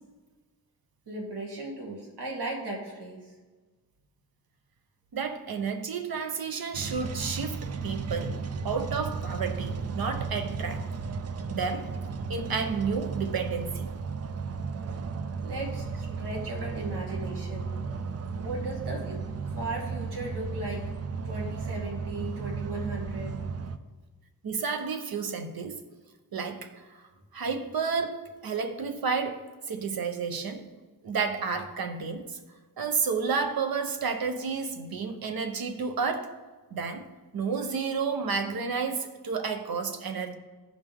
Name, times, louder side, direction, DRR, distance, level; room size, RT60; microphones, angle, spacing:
voice 1, 1.1-3.3 15.4-17.7 18.2-19.2 19.5-20.9 21.2-23.4, right 2 dB, 85° right, -2 dB, 2.1 m, -36 dB
voice 2, 5.1-8.4 8.6-10.8 11.5-11.9 12.3-13.9 24.4-25.8 26.3-27.0 27.3-30.7 31.0-32.4 32.8-36.3 36.7-37.0 37.3-40.3, right 5 dB, 65° right, 6 dB, 0.9 m, -31 dB
sound 1, 6.7-23.8, right 5 dB, 40° right, 0.4 m, -34 dB
14.5 x 5.2 x 3.6 m, 1.3 s
wide cardioid pair, 125°, 39 cm